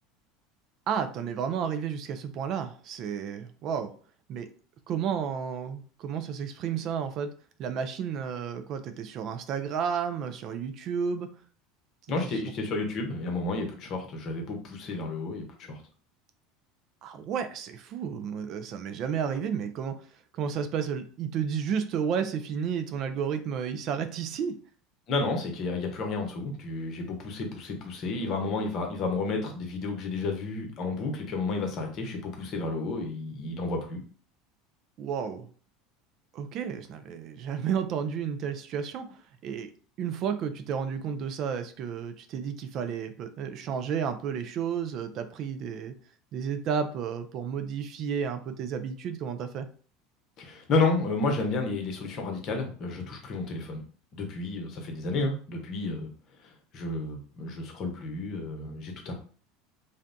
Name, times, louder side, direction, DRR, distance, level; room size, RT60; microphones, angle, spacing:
voice 1, 0.9-3.9 4.3-4.5 4.9-7.3 7.6-11.3 17.0-20.0 20.3-24.6 35.0-35.5 36.3-39.7 40.0-45.9 46.3-49.7, right 7 dB, 50° right, 9 dB, 0.3 m, -32 dB
voice 2, 12.1-15.8 25.1-34.0 50.4-53.8 54.1-56.1 56.4-59.1, left 3 dB, 50° left, 3 dB, 0.7 m, -31 dB
2.6 x 2.1 x 2.6 m, 0.42 s
hypercardioid pair, 85°, 0 cm